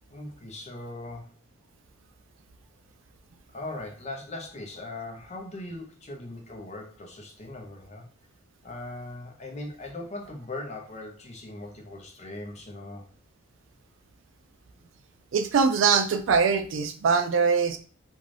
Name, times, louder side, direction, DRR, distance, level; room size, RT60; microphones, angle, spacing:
voice 1, 0.1-1.3 3.5-8.1 8.6-13.1, left 2 dB, 35° left, 1 dB, 0.6 m, -39 dB
voice 2, 15.3-17.8, right 5 dB, 60° right, 8 dB, 0.3 m, -22 dB
2.5 x 2.3 x 3.2 m, 0.40 s
head